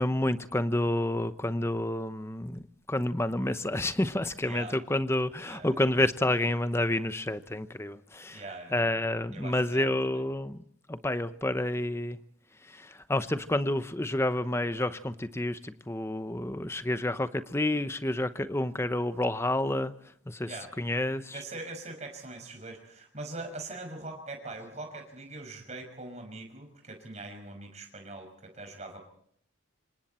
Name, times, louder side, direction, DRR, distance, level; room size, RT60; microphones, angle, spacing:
voice 1, 0.0-2.6 2.9-8.4 8.7-10.6 10.9-12.2 12.7-19.9 20.3-20.5 20.8-21.4, left 1 dB, 15° left, 12 dB, 0.8 m, -29 dB
voice 2, 4.4-4.8 5.4-5.9 8.3-8.8 9.3-10.2 20.4-20.7 21.3-29.0, right 2 dB, 35° right, 4 dB, 5.7 m, -42 dB
27.0 x 25.5 x 4.4 m, 0.65 s
head